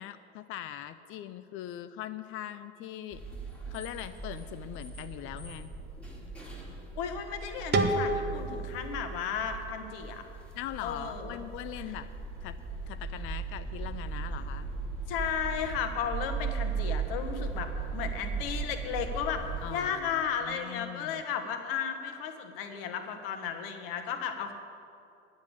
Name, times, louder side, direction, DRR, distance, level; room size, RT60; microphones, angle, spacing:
voice 1, 0.0-3.2 3.7-5.7 10.5-12.1 12.4-12.6 12.9-14.7 19.6-21.2, left 12 dB, 40° left, 11 dB, 0.6 m, -41 dB
sound 1, 3.1-19.7, right 4 dB, 5° left, 2.7 m, -38 dB
voice 2, 7.0-10.2 10.8-11.4 11.8-11.9 15.1-19.4 19.7-24.5, left 7 dB, 60° left, 7 dB, 1.4 m, -34 dB
sound 2, 7.7-10.6, right 2 dB, 30° right, 1.2 m, -32 dB
10.5 x 8.2 x 8.7 m, 2.6 s
figure-of-eight pair, 70°, 32 cm